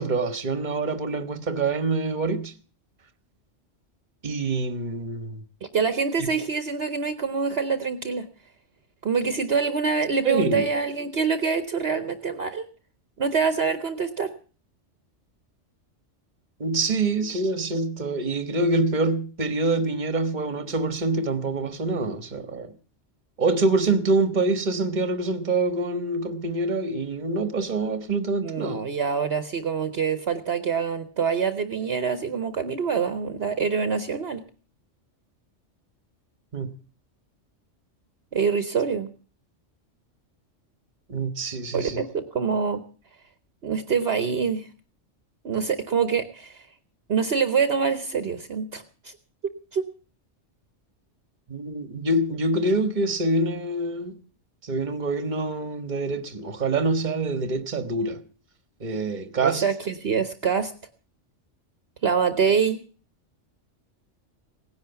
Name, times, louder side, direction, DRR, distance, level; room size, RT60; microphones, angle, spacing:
voice 1, 0.0-2.5 4.2-5.4 6.2-6.3 10.2-10.7 16.6-22.8 23.4-28.8 36.5-36.8 41.1-42.0 51.5-54.2 54.6-58.2 58.8-59.7, right 2 dB, 40° right, 1.4 m, -25 dB
voice 2, 5.7-8.2 9.0-12.6 13.2-14.3 28.4-34.4 38.3-39.1 41.7-42.8 43.6-44.7 45.4-46.7 47.1-49.1 49.7-49.8 59.4-60.7 62.0-62.8, right 6 dB, 55° right, 1.2 m, -25 dB
17.5 x 10.5 x 6.9 m
omnidirectional pair, 1.3 m